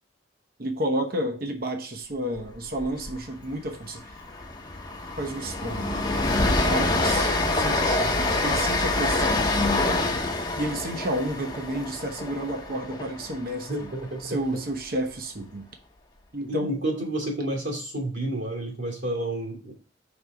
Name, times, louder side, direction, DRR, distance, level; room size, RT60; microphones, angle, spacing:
voice 1, 0.6-4.0 5.2-6.0 6.6-9.8 10.5-13.9 14.2-15.7 16.3-16.7, right 1 dB, 50° right, 0.9 m, -31 dB
Train, 2.8-3.1 3.4-3.5 3.9-14.0, left 2 dB, 20° left, 0.9 m, -26 dB
voice 2, 13.7-14.4 16.5-19.7, right 1 dB, 65° right, 2.4 m, -30 dB
5.4 x 3.9 x 4.7 m
head